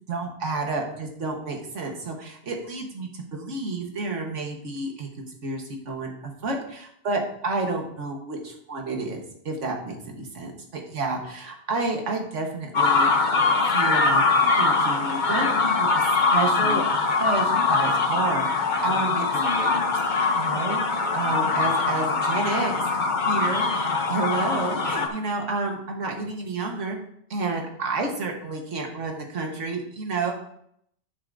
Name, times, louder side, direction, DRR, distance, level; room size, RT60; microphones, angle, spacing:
voice 1, 0.1-13.1 13.7-16.0 16.3-16.8 17.1-19.3 19.5-19.8 20.3-27.0 27.3-30.3, right 3 dB, 85° right, 1 dB, 1.7 m, -30 dB
sound 1, 12.7-25.1, left 4 dB, 45° left, 1.0 m, -22 dB
10.0 x 8.0 x 2.6 m, 0.68 s
omnidirectional pair, 1.2 m